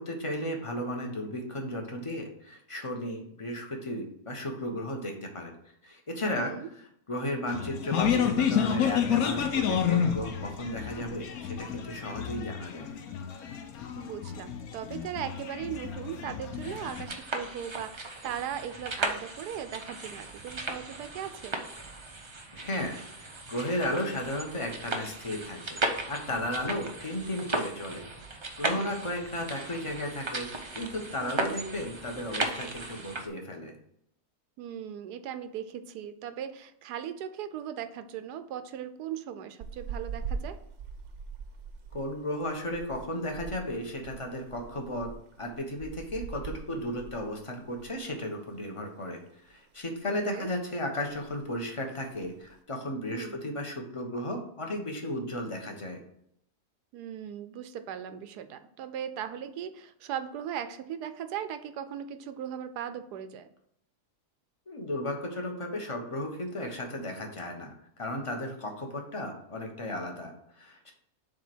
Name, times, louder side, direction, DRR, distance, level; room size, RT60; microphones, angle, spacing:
voice 1, 0.0-5.5 5.8-6.5 7.1-12.9 22.5-25.8 26.1-28.0 28.6-30.5 30.7-33.7 41.9-45.1 45.4-49.2 49.5-56.0 64.7-70.9, left 1 dB, 20° left, 2 dB, 1.1 m, -34 dB
voice 2, 6.4-6.7 14.0-21.6 28.8-28.9 31.2-31.6 34.6-40.6 50.3-50.5 53.1-53.4 56.9-63.5, right 9 dB, 80° right, 11 dB, 1.2 m, -38 dB
sound 1, 7.5-17.1, left 8 dB, 65° left, 1.2 m, -30 dB
sound 2, 16.6-33.3, right 2 dB, 35° right, 0.4 m, -36 dB
sound 3, 39.6-48.1 48.4-48.6 49.0-49.8 50.2-50.5 50.8-50.9 51.0-51.5 52.0-52.5, right 5 dB, 55° right, 1.0 m, -42 dB
7.5 x 3.5 x 6.1 m, 0.72 s
omnidirectional pair, 1.7 m